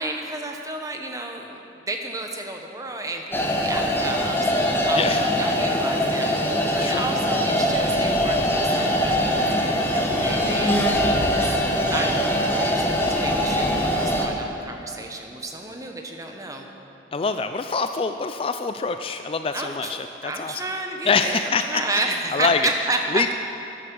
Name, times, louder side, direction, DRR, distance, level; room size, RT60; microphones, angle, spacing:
voice 1, 0.0-4.5 4.9-6.4 6.7-11.6 11.9-16.7 19.5-20.0 20.2-23.3, right 2 dB, 20° right, 3 dB, 1.1 m, -31 dB
sound 1, 3.3-14.3, equal, 15° left, 1.1 m, -22 dB
voice 2, 4.9-5.2 6.7-7.1 17.1-20.6 21.0-21.8 22.3-22.7 23.1-23.3, left 4 dB, 30° left, 8 dB, 0.3 m, -25 dB
13.5 x 11.0 x 6.2 m, 2.8 s
head